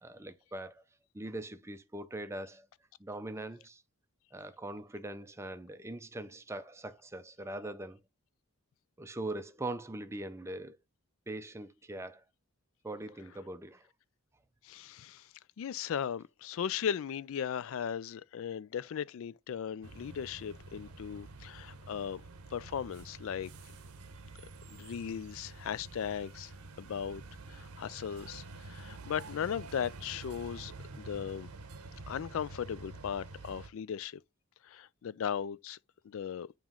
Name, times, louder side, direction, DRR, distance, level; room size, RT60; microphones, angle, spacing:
voice 1, 0.0-0.8 1.1-2.7 3.0-3.8 4.3-8.0 9.0-10.8 11.3-12.2 12.8-13.9, right 1 dB, 10° right, 0.4 m, -41 dB
voice 2, 14.6-15.3 15.6-22.2 22.5-23.5 24.7-26.5 26.8-27.2 27.5-30.7 31.0-31.5 32.1-34.2 34.6-35.8 36.0-36.5, left 8 dB, 60° left, 0.3 m, -37 dB
sound 1, 19.8-33.7, right 3 dB, 80° right, 0.8 m, -48 dB
8.8 x 3.0 x 3.7 m
head